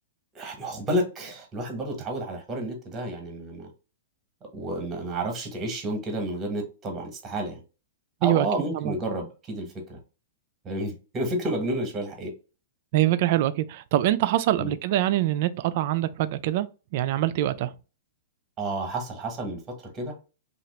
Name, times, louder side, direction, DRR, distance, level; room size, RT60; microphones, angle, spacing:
voice 1, 0.3-3.7 4.5-7.6 8.2-10.0 10.6-12.3 14.6-14.7 18.6-19.6 19.9-20.1, right 1 dB, 15° right, 1.0 m, -30 dB
voice 2, 12.9-16.7 16.9-17.7, right 14 dB, 45° right, 0.3 m, -24 dB
2.8 x 2.4 x 3.1 m
hypercardioid pair, 155°, 0 cm